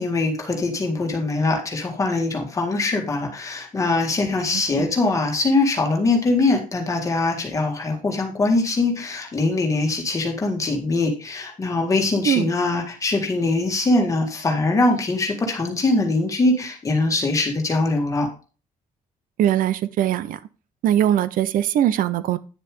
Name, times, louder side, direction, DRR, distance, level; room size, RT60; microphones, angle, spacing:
voice 1, 0.0-18.3, left 2 dB, 20° left, 1 dB, 1.9 m, -22 dB
voice 2, 19.4-20.4 20.8-22.4, right 11 dB, 65° right, 15 dB, 0.7 m, -21 dB
9.8 x 6.9 x 3.7 m, 0.36 s
cardioid pair, 175°, 15 cm